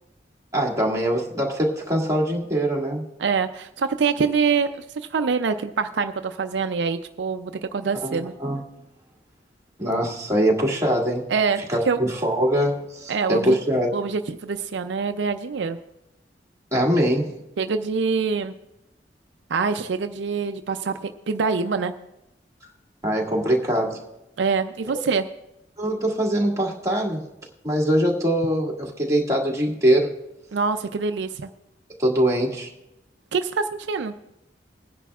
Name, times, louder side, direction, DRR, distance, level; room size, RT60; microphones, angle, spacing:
voice 1, 0.5-3.0 8.0-8.6 9.8-11.2 11.7-13.9 16.7-17.3 23.0-24.0 25.8-27.2 27.6-30.1 32.0-32.7, right 1 dB, 20° right, -3 dB, 1.9 m, -22 dB
voice 2, 3.2-8.3 11.3-12.0 13.1-13.6 13.9-15.8 17.6-18.5 19.5-21.9 24.4-25.3 30.5-31.5 33.3-34.1, right 5 dB, 75° right, 8 dB, 0.5 m, -25 dB
21.0 x 10.0 x 2.4 m, 0.90 s
head